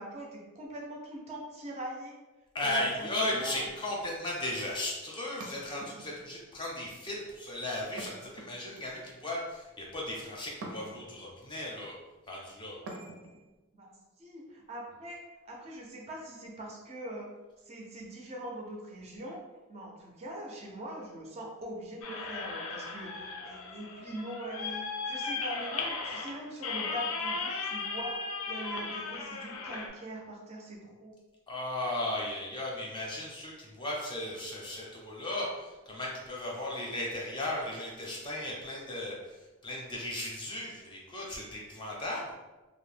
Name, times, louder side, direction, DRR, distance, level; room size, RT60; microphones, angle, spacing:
voice 1, 0.0-2.2 2.6-3.7 13.7-17.3 17.6-19.4 19.7-31.1, right 1 dB, 30° right, -1 dB, 0.4 m, -42 dB
voice 2, 2.5-11.9 12.3-12.8 31.5-39.1 39.6-42.3, left 1 dB, 20° left, -3 dB, 0.5 m, -36 dB
sound 1, 5.4-6.3 8.0-8.9 10.6-11.2 12.9-13.5, right 2 dB, 90° right, 0.5 m, -45 dB
sound 2, 22.0-29.9, left 4 dB, 85° left, 0.5 m, -36 dB
2.5 x 2.0 x 3.2 m, 1.2 s
head